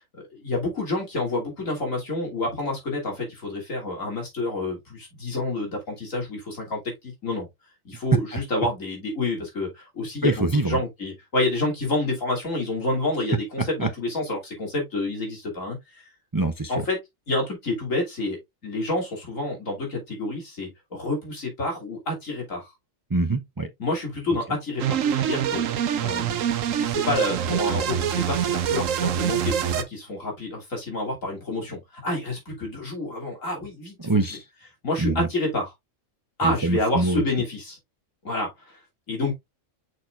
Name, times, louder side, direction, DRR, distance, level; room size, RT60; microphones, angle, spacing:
voice 1, 0.2-7.5 7.8-16.0 16.7-17.0 17.3-22.7 23.8-25.6 26.0-26.4 26.8-34.0 34.8-35.7 36.4-37.8 38.2-38.5 39.1-39.3, left 2 dB, 85° left, 3.3 m, -28 dB
voice 2, 10.2-10.8 13.8-13.9 16.3-16.8 23.1-23.7 34.0-34.4 35.0-35.3 36.4-37.2, right 2 dB, 30° right, 0.4 m, -24 dB
sound 1, 24.8-29.8, right 9 dB, 85° right, 1.1 m, -25 dB
6.5 x 6.0 x 2.5 m
omnidirectional pair, 1.3 m